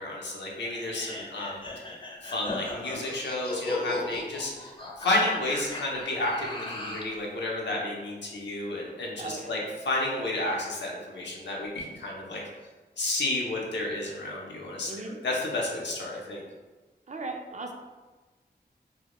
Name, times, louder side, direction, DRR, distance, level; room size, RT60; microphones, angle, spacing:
voice 1, 0.0-1.9 2.2-12.4 13.0-16.4, left 2 dB, 90° left, -2 dB, 0.5 m, -31 dB
sound 1, 0.6-7.2, left 2 dB, 30° left, 0.4 m, -36 dB
voice 2, 9.2-9.6 14.9-15.2 17.1-17.7, right 3 dB, 45° right, 2 dB, 0.4 m, -37 dB
2.2 x 2.0 x 2.9 m, 1.2 s
wide cardioid pair, 45°, 18 cm